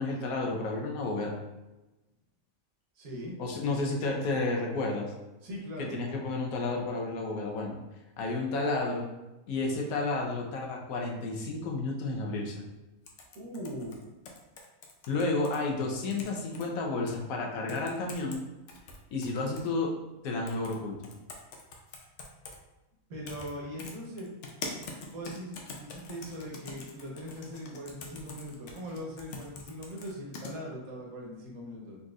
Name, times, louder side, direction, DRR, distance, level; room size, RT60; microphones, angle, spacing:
voice 1, 0.0-1.3 3.4-5.1 5.9-7.8 8.2-9.1 9.5-12.6 15.1-18.4 19.1-19.9 20.2-21.0, left 3 dB, 85° left, 0 dB, 1.2 m, -31 dB
voice 2, 3.0-3.4 5.4-6.0 13.3-14.1 23.1-24.3 25.1-32.0, equal, 85° right, -2 dB, 1.4 m, -40 dB
sound 1, 13.1-15.6 16.0-16.7 17.1-17.2 17.7-18.4 18.7-19.7 20.5-20.8 21.0-22.6 23.3-23.5 23.8-30.5, left 3 dB, 65° left, 0.9 m, -44 dB
4.0 x 3.6 x 2.4 m, 1.0 s
omnidirectional pair, 1.5 m